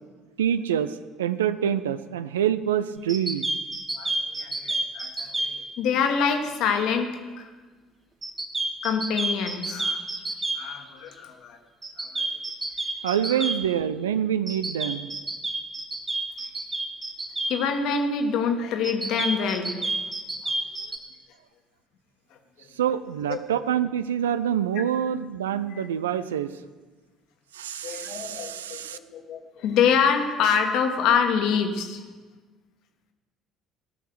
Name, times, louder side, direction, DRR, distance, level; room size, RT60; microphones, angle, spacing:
voice 1, 0.4-3.6 13.0-15.1 22.7-26.6 27.5-29.0, right 9 dB, 75° right, 13 dB, 0.4 m, -26 dB
sound 1, 3.1-5.5 8.2-10.6 11.8-13.6 14.5-17.5 18.8-21.0, right 2 dB, 25° right, 1.7 m, -29 dB
voice 2, 3.9-7.5 8.8-10.0 10.5-11.6 12.0-12.3 13.3-13.4 17.5-20.0 20.4-20.5 22.6-22.7 23.3-23.4 27.8-32.0, left 6 dB, 60° left, 4 dB, 1.5 m, -26 dB
18.0 x 6.3 x 6.3 m, 1.3 s
figure-of-eight pair, 55°, 0 cm